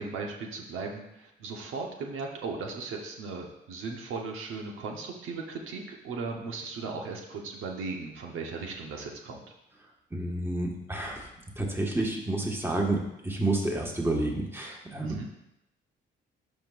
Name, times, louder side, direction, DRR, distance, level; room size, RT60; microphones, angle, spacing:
voice 1, 0.0-9.4 15.0-15.3, right 4 dB, 85° right, 1 dB, 1.0 m, -37 dB
voice 2, 10.1-11.3 11.6-15.2, right 2 dB, 10° right, 0 dB, 1.5 m, -30 dB
12.0 x 5.3 x 2.5 m, 0.86 s
cardioid pair, 90°, 20 cm